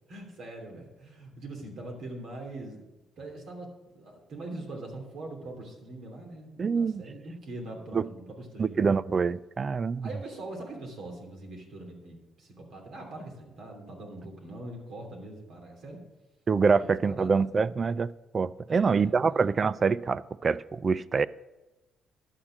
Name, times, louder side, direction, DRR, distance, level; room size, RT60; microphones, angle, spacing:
voice 1, 0.1-2.8 3.2-8.8 10.0-16.0 16.7-17.5 18.7-19.5, right 2 dB, 70° right, 1 dB, 3.0 m, -42 dB
voice 2, 6.6-7.0 7.9-8.0 8.6-10.1 16.5-18.1 18.3-21.3, right 5 dB, 40° right, 19 dB, 0.3 m, -25 dB
11.5 x 7.3 x 6.0 m, 1.1 s
cardioid pair, 90°, 0 cm